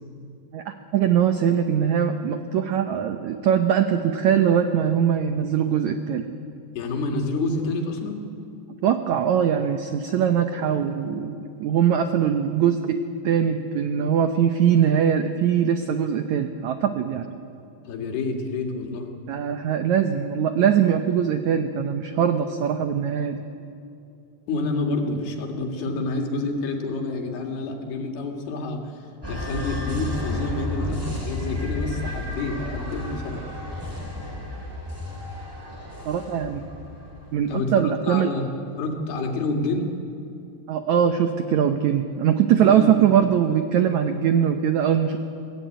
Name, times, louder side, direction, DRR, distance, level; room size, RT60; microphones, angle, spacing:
voice 1, 0.5-6.3 8.8-13.0 13.2-17.3 19.3-23.4 36.1-36.7 37.3-38.3 40.7-45.2, right 8 dB, 90° right, 7 dB, 1.6 m, -21 dB
voice 2, 6.7-8.2 17.9-19.1 24.5-33.4 37.5-38.5 38.8-39.9 42.6-43.2, left 3 dB, 80° left, 2 dB, 4.1 m, -28 dB
sound 1, 29.2-37.5, left 1 dB, 5° right, 3.5 m, -32 dB
22.5 x 18.0 x 9.3 m, 2.6 s
omnidirectional pair, 4.5 m